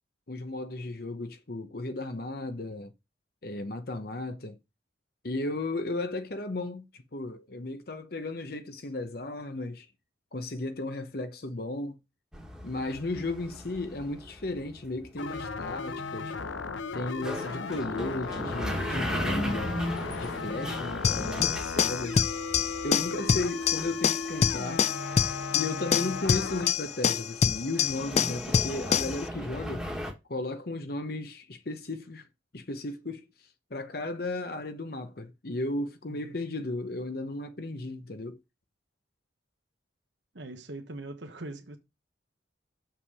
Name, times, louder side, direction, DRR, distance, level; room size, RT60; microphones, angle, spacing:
voice 1, 0.3-2.9 3.4-4.6 5.2-9.9 10.3-12.0 12.6-16.3 16.9-19.8 20.2-22.2 22.8-24.9 25.5-29.9 30.3-32.3 32.5-33.3 33.7-38.4, left 2 dB, 50° left, 0.9 m, -35 dB
sound 1, 12.3-30.1, equal, 5° right, 1.6 m, -38 dB
sound 2, 15.2-26.7, left 4 dB, 85° left, 0.7 m, -36 dB
sound 3, 21.0-29.2, left 7 dB, 35° left, 0.4 m, -27 dB
voice 2, 40.3-41.8, right 2 dB, 70° right, 1.2 m, -42 dB
7.2 x 5.8 x 4.8 m
head